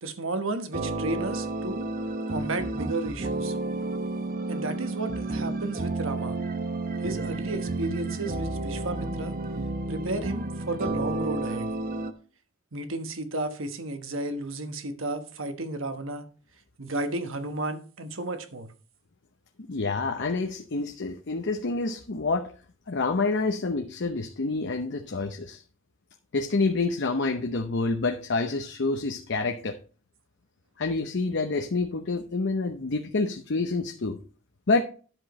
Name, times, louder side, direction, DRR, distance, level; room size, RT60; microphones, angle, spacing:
voice 1, 0.0-1.9 2.3-3.6 4.5-6.4 7.0-9.4 9.9-11.7 12.7-16.3 16.8-18.7, right 2 dB, 70° right, 1.2 m, -33 dB
sound 1, 0.7-12.1, right 2 dB, 45° right, 0.8 m, -31 dB
voice 2, 19.7-22.5 22.9-25.6 26.3-29.8 30.8-34.2 34.7-34.8, left 3 dB, 60° left, 0.8 m, -27 dB
11.0 x 7.6 x 3.1 m
head